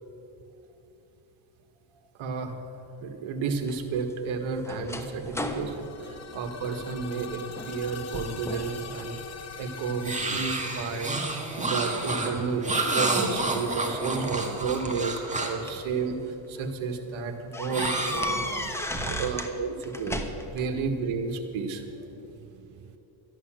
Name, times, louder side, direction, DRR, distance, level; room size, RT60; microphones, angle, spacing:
voice 1, 2.2-2.6 3.0-7.4 7.7-11.2 11.4-18.4 19.1-22.1, right 4 dB, 70° right, 6 dB, 1.8 m, -31 dB
sound 1, 3.6-7.1 7.5-7.8 8.1-8.8 9.2-10.0 10.6-12.0 13.2-13.3 14.5-15.9 16.4-16.6 16.9-17.0 17.5-19.5 19.8-20.7, left 1 dB, 5° left, 1.1 m, -35 dB
sound 2, 5.5-13.3, left 6 dB, 30° left, 1.4 m, -44 dB
sound 3, 10.0-15.7 17.7-18.9, right 2 dB, 15° right, 1.7 m, -30 dB
voice 2, 18.6-19.3 22.1-23.0, right 10 dB, 40° right, 9 dB, 0.6 m, -43 dB
13.0 x 11.0 x 7.6 m, 3.0 s
cardioid pair, 110°, 49 cm